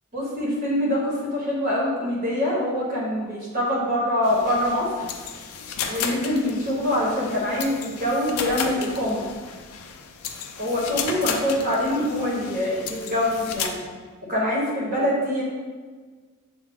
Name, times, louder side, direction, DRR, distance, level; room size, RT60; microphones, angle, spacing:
voice 1, 0.1-4.9 5.9-9.2 10.6-13.8 14.3-15.4, left 1 dB, 40° right, -4 dB, 1.0 m, -24 dB
sound 1, 4.2-13.7, left 7 dB, 85° left, 0.4 m, -34 dB
6.7 x 2.3 x 3.5 m, 1.5 s
head